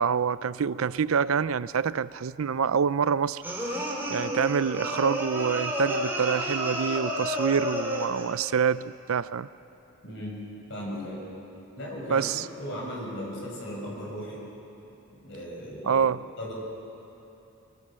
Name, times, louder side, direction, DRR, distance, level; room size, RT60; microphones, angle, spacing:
voice 1, 0.0-3.4 4.1-9.5 12.1-12.5 15.8-16.2, right 6 dB, 80° right, 17 dB, 0.5 m, -26 dB
sound 1, 3.4-8.3, equal, 10° right, 3.1 m, -31 dB
voice 2, 10.0-10.4 10.7-11.2 11.8-14.4 15.2-16.1 16.4-16.5, equal, 60° left, -2 dB, 7.3 m, -36 dB
24.0 x 22.5 x 7.5 m, 2.9 s
head